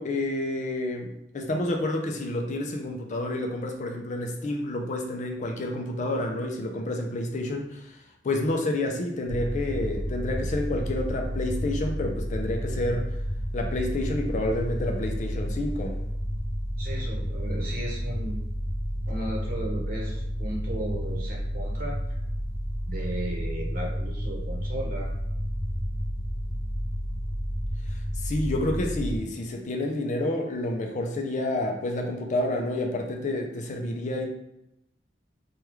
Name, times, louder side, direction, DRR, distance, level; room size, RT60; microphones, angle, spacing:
voice 1, 0.0-13.2 13.5-16.0 27.9-34.3, left 1 dB, 40° left, 2 dB, 0.4 m, -29 dB
sound 1, 9.3-29.2, equal, 60° left, 0.9 m, -31 dB
voice 2, 16.8-18.4 19.1-21.9 22.9-25.1, right 1 dB, 55° right, -2 dB, 0.9 m, -35 dB
3.4 x 2.3 x 3.0 m, 0.83 s
head